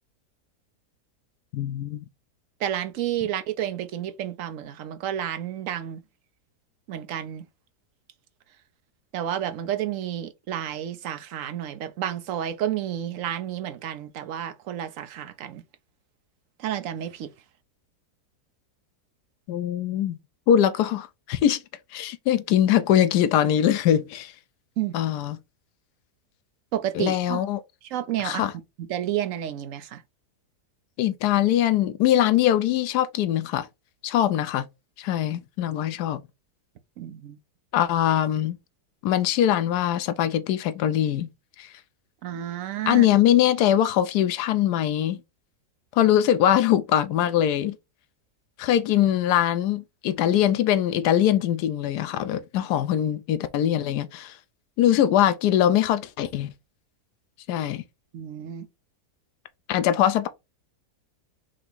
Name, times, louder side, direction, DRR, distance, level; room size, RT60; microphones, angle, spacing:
voice 1, 1.5-2.0 19.5-20.2 20.5-21.6 21.9-24.3 24.9-25.4 26.9-27.6 28.2-28.5 31.0-33.7 34.0-34.7 35.0-36.2 37.7-38.6 39.0-41.3 41.6-41.7 42.9-45.2 45.9-47.8 48.6-54.4 54.8-56.5 57.5-57.8 59.7-60.3, left 11 dB, 80° left, 1.2 m, -22 dB
voice 2, 2.6-6.0 6.9-7.5 9.1-15.6 16.6-17.3 24.8-25.0 26.7-27.4 27.9-28.4 28.8-30.0 37.0-37.4 42.2-43.1 58.1-58.7, right 11 dB, 65° right, 0.9 m, -30 dB
4.6 x 2.9 x 3.9 m
omnidirectional pair, 1.7 m